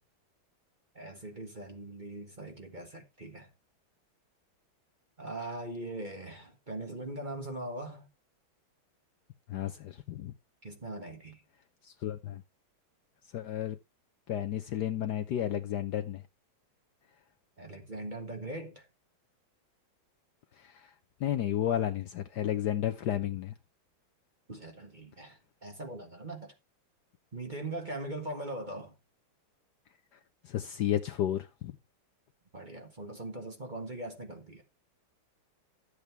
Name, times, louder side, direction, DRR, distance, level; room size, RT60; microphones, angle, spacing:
voice 1, 0.9-3.5 5.2-8.1 10.6-11.4 17.6-18.8 24.5-26.5 27.3-28.9 32.5-34.6, right 2 dB, 25° right, 1.4 m, -41 dB
voice 2, 9.5-10.3 11.8-12.4 13.3-13.8 14.3-16.2 20.6-20.9 21.2-23.5 30.4-31.7, left 11 dB, 65° left, 1.1 m, -32 dB
12.5 x 8.3 x 3.2 m
omnidirectional pair, 2.2 m